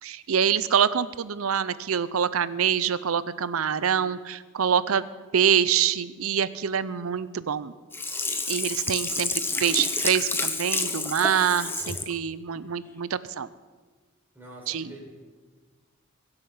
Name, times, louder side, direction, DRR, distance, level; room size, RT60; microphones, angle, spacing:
voice 1, 0.0-5.0 5.3-7.7 8.5-9.3 9.6-13.5 14.7-14.9, right 8 dB, 70° right, 16 dB, 0.6 m, -25 dB
Sink (filling or washing), 7.9-12.1 12.6-12.7, left 3 dB, 10° left, 0.8 m, -29 dB
voice 2, 14.3-15.0, right 1 dB, 10° right, -4 dB, 4.9 m, -45 dB
22.0 x 7.9 x 5.7 m, 1.4 s
head